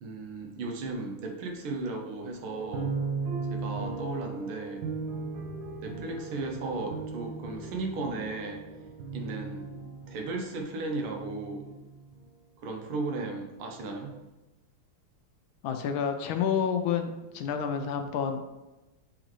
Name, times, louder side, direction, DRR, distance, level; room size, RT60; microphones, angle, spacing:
voice 1, 0.0-2.9 3.5-4.8 5.8-8.6 9.1-9.7 10.1-11.7 12.6-14.2, right 3 dB, 85° right, 2 dB, 1.8 m, -35 dB
sound 1, 2.5-10.5 11.1-12.2, right 4 dB, 65° right, 1.8 m, -37 dB
voice 2, 15.6-18.4, left 7 dB, 75° left, 6 dB, 1.3 m, -29 dB
7.8 x 3.9 x 3.1 m, 1.0 s
omnidirectional pair, 2.3 m